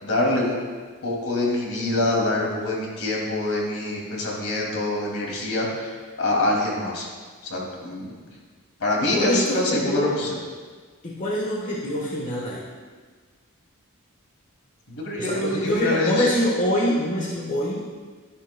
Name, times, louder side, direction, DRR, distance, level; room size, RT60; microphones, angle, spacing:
voice 1, 0.0-0.6 1.0-7.1 7.4-8.2 8.8-10.4 14.9-16.4, left 2 dB, 65° left, -2 dB, 2.5 m, -25 dB
voice 2, 9.1-10.1 11.0-12.6 15.2-17.8, left 1 dB, 35° left, -4 dB, 1.2 m, -25 dB
12.5 x 10.5 x 2.2 m, 1.5 s
head